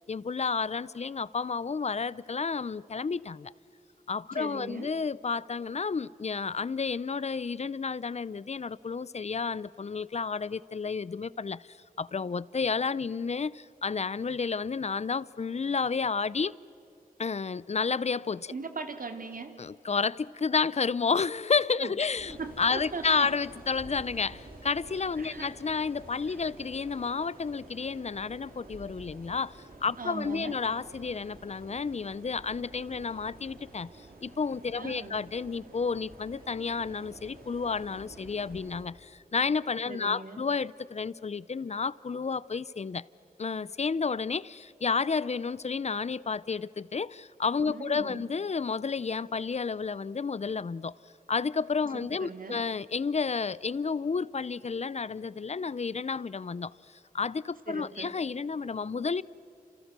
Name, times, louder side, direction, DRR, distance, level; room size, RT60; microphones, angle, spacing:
voice 1, 0.0-3.5 4.1-16.6 17.2-18.5 19.6-33.9 34.2-43.0 43.4-50.9 51.3-56.7 57.1-59.2, left 5 dB, 45° left, 0.6 m, -31 dB
voice 2, 4.3-4.9 18.5-19.5 21.8-21.9 22.4-23.3 25.2-25.5 26.3-26.4 30.0-30.6 34.8-35.2 39.9-40.4 47.7-48.2 51.9-52.6 57.7-58.1, right 4 dB, 70° right, 2.5 m, -39 dB
sound 1, 22.2-38.8, right 2 dB, 85° right, 4.4 m, -50 dB
29.5 x 28.0 x 6.8 m
wide cardioid pair, 75°, 15 cm